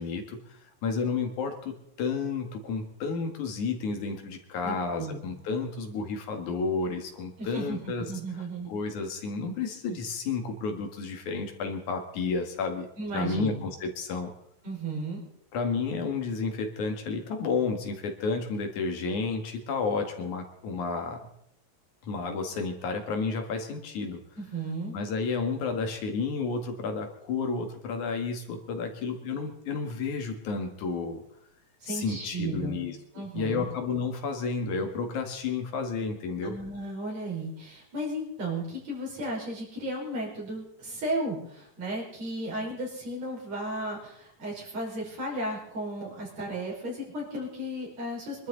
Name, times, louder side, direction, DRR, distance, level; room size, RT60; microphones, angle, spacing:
voice 1, 0.0-8.1 8.7-12.9 13.1-14.3 15.5-21.2 22.0-24.2 24.9-31.2 31.9-36.6, left 4 dB, 80° left, 4 dB, 3.3 m, -31 dB
voice 2, 4.6-5.2 7.4-8.8 13.0-13.6 14.6-15.2 24.4-24.9 31.8-32.8 33.1-33.7 36.4-48.5, right 1 dB, 60° right, -3 dB, 6.5 m, -34 dB
24.0 x 12.5 x 4.0 m, 0.76 s
omnidirectional pair, 3.4 m